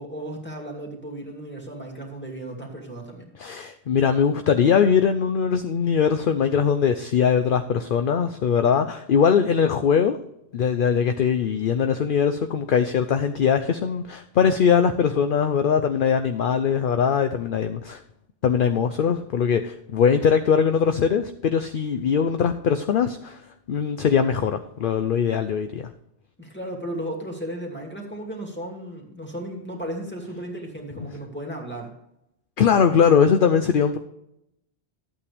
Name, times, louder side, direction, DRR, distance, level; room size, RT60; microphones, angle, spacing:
voice 1, 0.0-3.3 26.4-31.9, right 1 dB, 10° left, 0 dB, 2.5 m, -35 dB
voice 2, 3.4-10.2 10.5-18.0 18.4-23.4 23.7-25.9 32.6-34.0, left 7 dB, 60° left, 9 dB, 0.7 m, -21 dB
13.0 x 8.4 x 3.4 m, 0.81 s
omnidirectional pair, 1.1 m